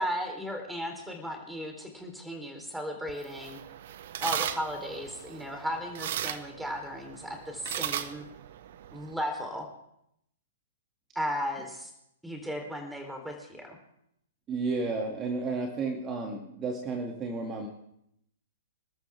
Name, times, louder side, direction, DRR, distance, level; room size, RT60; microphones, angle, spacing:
voice 1, 0.0-3.6 4.2-8.2 8.9-9.7 11.2-11.9 12.2-13.8, equal, 5° right, 3 dB, 3.7 m, -35 dB
sound 1, 3.1-9.1, right 11 dB, 55° right, 1.0 m, -37 dB
voice 2, 14.5-17.7, right 3 dB, 25° right, 1 dB, 2.4 m, -32 dB
27.5 x 13.0 x 3.6 m, 0.77 s
hypercardioid pair, 115°, 0 cm